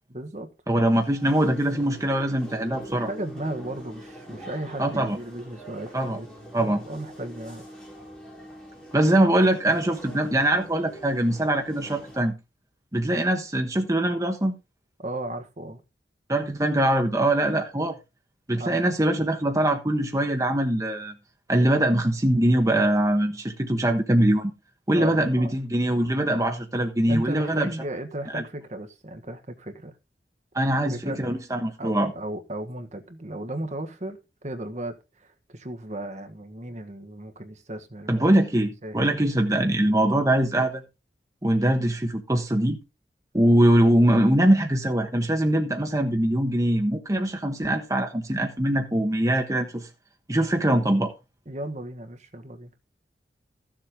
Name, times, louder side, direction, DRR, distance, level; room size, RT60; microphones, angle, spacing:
voice 1, 0.1-0.5 2.9-7.7 15.0-15.8 18.5-18.7 24.9-25.5 27.1-30.0 30.5-31.2 31.8-38.3 38.8-39.1 44.1-44.5 51.4-52.7, right 1 dB, 40° right, 1.5 m, -35 dB
voice 2, 0.7-3.1 4.8-5.2 5.9-6.2 6.5-6.8 8.9-12.3 12.9-14.5 16.3-17.9 18.5-21.1 21.5-24.5 24.9-27.7 28.3-28.4 30.5-32.1 38.1-40.8 41.4-42.8 43.3-49.9 50.3-51.1, right 1 dB, 20° right, 1.2 m, -22 dB
sound 1, 0.8-12.2, right 1 dB, 5° left, 5.1 m, -44 dB
14.5 x 7.5 x 3.7 m
head